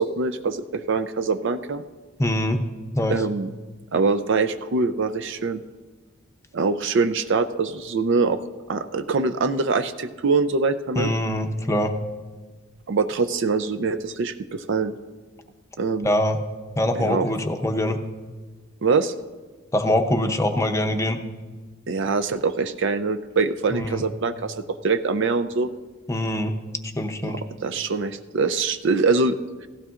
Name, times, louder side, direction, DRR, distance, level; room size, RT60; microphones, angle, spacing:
voice 1, 0.0-1.8 3.1-3.5 3.9-5.6 6.5-8.4 8.7-11.1 12.9-14.9 15.8-16.1 17.0-17.3 18.8-19.1 21.9-25.7 27.2-29.7, right 4 dB, 60° right, 10 dB, 0.5 m, -24 dB
voice 2, 2.2-2.6 2.9-3.2 11.0-11.9 16.0-16.4 16.8-18.0 19.7-21.2 23.7-24.0 26.1-26.5 27.0-27.4, left 1 dB, 15° left, 5 dB, 0.7 m, -23 dB
16.0 x 15.0 x 2.5 m, 1.3 s
head